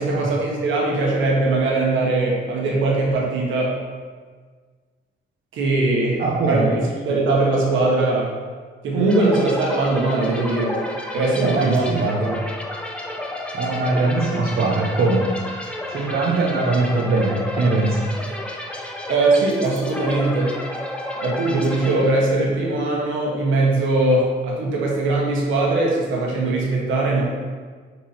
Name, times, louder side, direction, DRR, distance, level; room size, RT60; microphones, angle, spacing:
voice 1, 0.0-3.7 5.5-6.2 6.5-6.7 7.0-8.3 8.8-10.8 11.1-11.8 12.2-12.4 19.1-20.5 21.2-27.2, right 2 dB, 80° right, -2 dB, 1.5 m, -20 dB
voice 2, 6.2-6.8 11.4-12.2 13.5-15.3 15.9-18.1, right 3 dB, 50° right, -2 dB, 0.9 m, -21 dB
sound 1, 9.1-22.6, left 1 dB, 5° left, 0.8 m, -32 dB
5.6 x 4.6 x 4.3 m, 1.6 s
cardioid pair, 90°, 20 cm